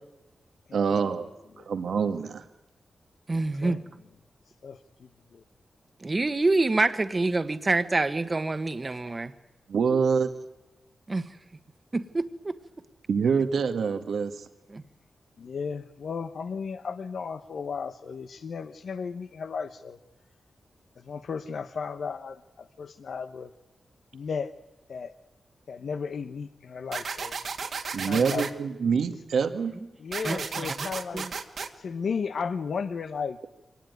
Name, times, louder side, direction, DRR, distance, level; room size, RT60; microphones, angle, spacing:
voice 1, 0.7-1.3 1.7-2.4 9.7-10.3 13.1-14.5 27.9-29.7, right 6 dB, 85° right, 8 dB, 1.6 m, -25 dB
voice 2, 3.3-3.8 6.0-9.3 11.1-11.3 11.9-12.5 14.7-14.8 30.2-30.7 31.1-31.3, right 2 dB, 35° right, 10 dB, 1.4 m, -26 dB
voice 3, 4.6-5.4 15.4-20.0 21.0-23.5 24.1-24.5 24.9-25.1 25.7-27.3 28.0-28.5 30.0-31.3 31.8-33.4, left 5 dB, 75° left, 10 dB, 1.0 m, -34 dB
sound 1, 26.9-28.5 30.1-31.7, right 5 dB, 70° right, 2.0 m, -34 dB
24.0 x 19.0 x 9.5 m, 0.97 s
cardioid pair, 70°, 0 cm